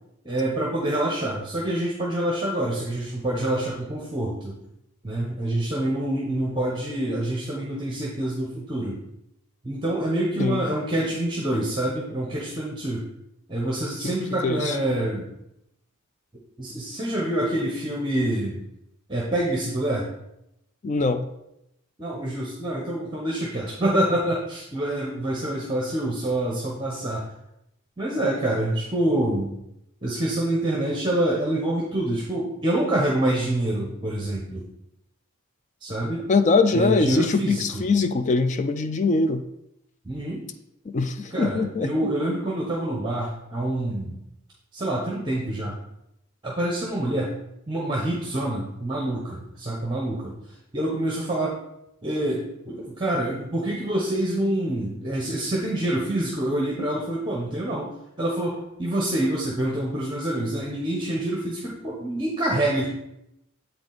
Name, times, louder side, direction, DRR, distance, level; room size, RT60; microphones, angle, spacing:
voice 1, 0.2-4.6 5.0-9.0 9.6-13.0 13.5-15.3 16.6-18.6 19.1-20.1 22.0-27.2 28.0-29.5 30.0-34.6 35.8-36.3 36.7-37.8 40.0-40.4 41.3-44.2 44.7-45.7 46.4-47.3 47.7-50.3 50.7-51.6 52.0-57.9 58.2-62.9, right 1 dB, 20° right, -3 dB, 1.0 m, -26 dB
voice 2, 14.4-14.7 20.8-21.3 36.3-39.4 40.9-42.1, left 3 dB, 35° left, 10 dB, 0.4 m, -22 dB
7.6 x 4.8 x 4.0 m, 0.84 s
head